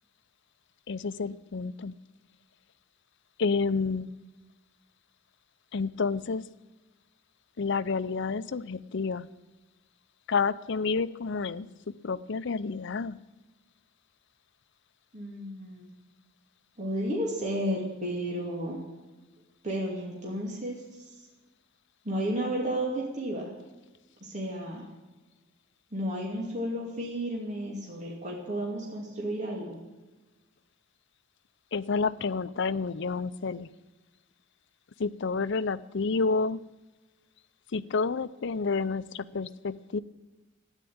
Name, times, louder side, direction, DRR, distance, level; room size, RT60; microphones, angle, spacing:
voice 1, 0.9-1.9 3.4-4.1 5.7-6.4 7.6-9.3 10.3-11.7 12.0-13.2 31.7-33.7 35.0-36.6 37.7-40.0, left 4 dB, 65° left, 15 dB, 0.6 m, -29 dB
voice 2, 15.1-15.9 16.8-18.8 19.6-21.2 22.0-23.5 24.2-24.9 25.9-29.8, equal, 40° right, -2 dB, 2.6 m, -32 dB
13.0 x 10.0 x 8.7 m, 1.2 s
head